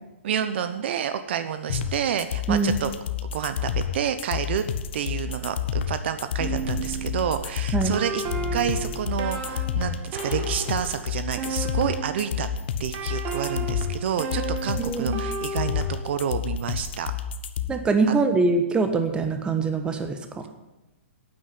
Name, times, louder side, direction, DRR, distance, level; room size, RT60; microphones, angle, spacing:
voice 1, 0.2-2.9 3.2-4.7 4.9-8.2 8.5-12.5 12.8-17.1, right 9 dB, 55° right, 10 dB, 0.9 m, -29 dB
sound 1, 1.7-17.7, left 8 dB, 55° left, 1.0 m, -29 dB
sound 2, 6.4-12.3 12.9-16.1, right 3 dB, 35° right, 2.0 m, -33 dB
voice 2, 14.8-15.2 17.7-20.5, right 4 dB, 15° right, 6 dB, 1.4 m, -23 dB
9.6 x 8.9 x 9.9 m, 0.99 s
hypercardioid pair, 130°, 7 cm